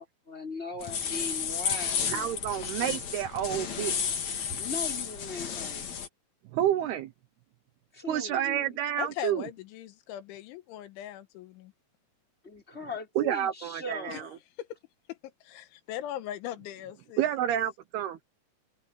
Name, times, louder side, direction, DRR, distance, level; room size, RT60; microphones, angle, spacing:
voice 1, 0.0-2.3 4.6-5.9 7.9-8.8 12.4-14.4, left 3 dB, 15° left, 5.1 m, -39 dB
sound 1, 0.8-6.1, left 7 dB, 45° left, 2.9 m, -32 dB
voice 2, 2.1-4.0 6.5-7.1 8.1-9.5 13.2-14.3 17.2-18.2, right 11 dB, 75° right, 2.5 m, -29 dB
voice 3, 9.0-11.7 14.1-14.2 14.6-14.7 15.1-15.2 15.4-17.3, left 12 dB, 90° left, 3.7 m, -39 dB
omnidirectional pair, 5.3 m